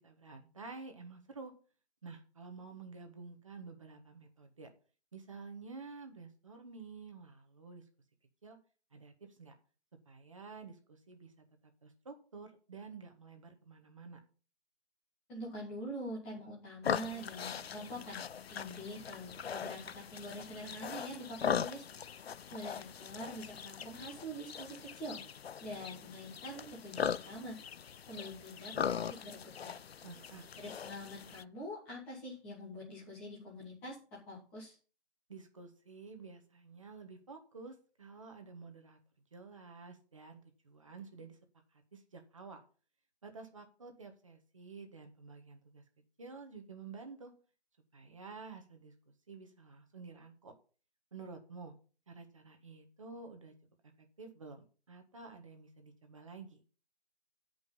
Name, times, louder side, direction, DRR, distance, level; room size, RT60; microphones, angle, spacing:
voice 1, 0.0-1.5 2.0-4.7 5.1-7.8 8.4-8.6 8.9-9.5 10.0-11.4 11.8-14.2 30.0-30.7 35.3-39.0 39.3-41.4 41.7-42.6 43.2-45.8 46.2-47.3 47.9-50.5 51.1-51.7 52.1-53.5 53.8-56.6, right 4 dB, 30° right, 5 dB, 1.5 m, -50 dB
voice 2, 15.3-21.8 22.5-25.2 25.6-27.6 28.1-29.8 30.6-34.7, equal, 5° left, -7 dB, 1.4 m, -45 dB
sound 1, 16.8-31.4, left 8 dB, 65° left, 0.5 m, -40 dB
13.5 x 5.4 x 5.6 m, 0.38 s
hypercardioid pair, 175°, 34 cm